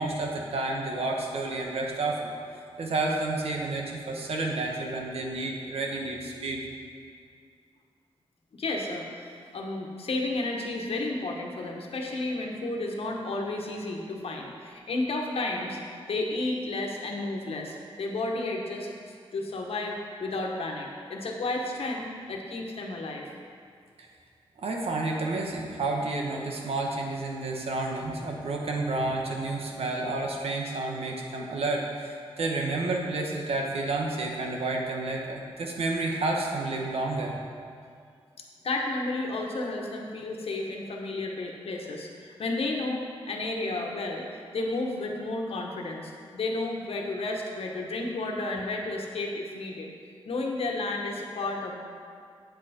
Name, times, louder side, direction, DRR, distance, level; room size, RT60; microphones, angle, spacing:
voice 1, 0.0-2.3 2.8-6.6 24.6-37.4, right 2 dB, 80° right, 0 dB, 1.3 m, -30 dB
voice 2, 8.5-15.8 16.1-18.9 19.3-23.3 38.6-49.9 50.2-51.8, left 2 dB, 75° left, 0 dB, 1.3 m, -32 dB
9.0 x 7.9 x 4.4 m, 2.2 s
wide cardioid pair, 125°, 10 cm